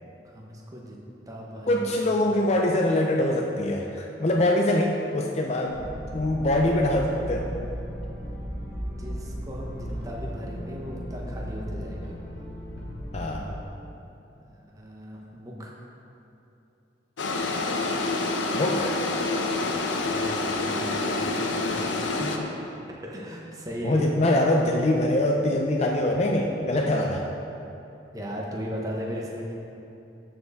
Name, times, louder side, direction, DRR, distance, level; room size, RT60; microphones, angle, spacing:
voice 1, 0.2-1.0 1.3-2.1 8.8-12.1 14.3-15.7 19.7-19.8 20.0-22.5 23.0-24.1 28.1-29.5, equal, 20° right, -2 dB, 0.9 m, -37 dB
voice 2, 1.7-5.8 6.1-7.5 13.1-13.5 18.5-19.0 23.8-27.2, left 1 dB, 35° left, 0 dB, 0.4 m, -23 dB
sound 1, 5.7-13.7, equal, 70° left, 1.2 m, -36 dB
sound 2, 17.2-22.4, left 2 dB, 90° left, 0.7 m, -27 dB
13.0 x 4.6 x 3.5 m, 2.9 s
head